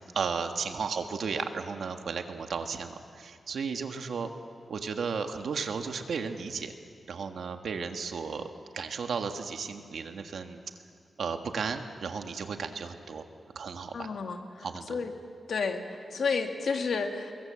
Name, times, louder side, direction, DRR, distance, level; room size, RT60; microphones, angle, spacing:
voice 1, 0.1-4.3 4.7-6.7 7.1-8.5 8.7-10.6 11.2-13.2 13.5-14.1 14.6-15.0, right 5 dB, 85° right, 6 dB, 1.6 m, -34 dB
voice 2, 13.9-15.1 15.5-17.3, left 5 dB, 75° left, 4 dB, 2.0 m, -31 dB
25.5 x 21.5 x 7.7 m, 2.3 s
wide cardioid pair, 125°, 0 cm